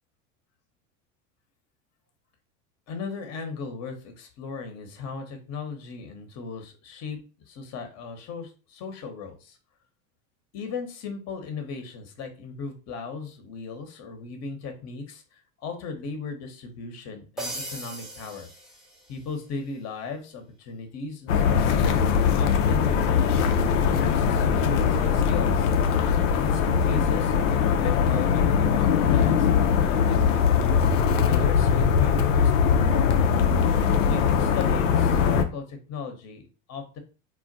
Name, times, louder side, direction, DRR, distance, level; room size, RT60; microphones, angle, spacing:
voice 1, 2.9-7.2 7.5-9.6 10.5-18.5 19.1-25.7 26.3-27.3 27.8-29.5 29.8-30.5 31.1-33.3 34.0-36.4 36.7-37.0, left 5 dB, 45° left, 6 dB, 0.9 m, -36 dB
sound 1, 17.4-19.4, right 1 dB, ahead, 0.5 m, -38 dB
sound 2, 21.3-35.4, left 7 dB, 80° left, 0.5 m, -21 dB
2.2 x 2.2 x 3.8 m, 0.34 s
hypercardioid pair, 95°, 38 cm